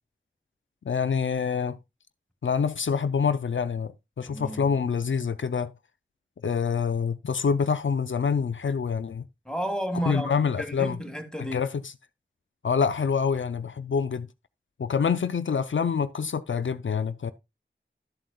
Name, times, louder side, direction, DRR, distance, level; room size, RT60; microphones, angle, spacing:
voice 1, 0.9-1.8 2.4-3.9 4.2-5.7 6.4-9.2 10.1-11.0 11.4-11.9 12.6-14.3 14.8-17.3, left 6 dB, 80° left, 0.5 m, -26 dB
voice 2, 4.2-4.7 9.5-11.7, equal, 5° left, 1.9 m, -32 dB
12.0 x 7.6 x 2.3 m
wide cardioid pair, 40°, 20 cm